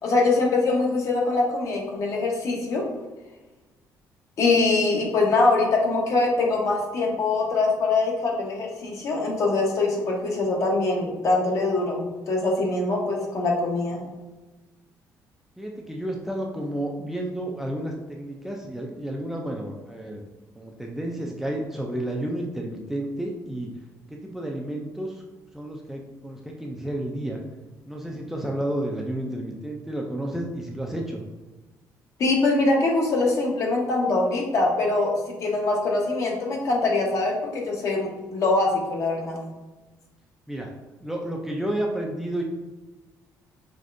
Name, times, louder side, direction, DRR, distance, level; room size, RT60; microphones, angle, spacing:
voice 1, 0.0-2.8 4.4-14.0 32.2-35.1 35.4-39.4, left 3 dB, 50° left, -1 dB, 1.0 m, -23 dB
voice 2, 15.6-20.2 20.5-23.7 24.1-25.2 25.5-27.4 27.9-31.2 40.5-40.7 41.0-42.4, right 1 dB, 5° right, 0 dB, 0.4 m, -31 dB
5.0 x 3.2 x 2.5 m, 1.1 s
cardioid pair, 150°, 7 cm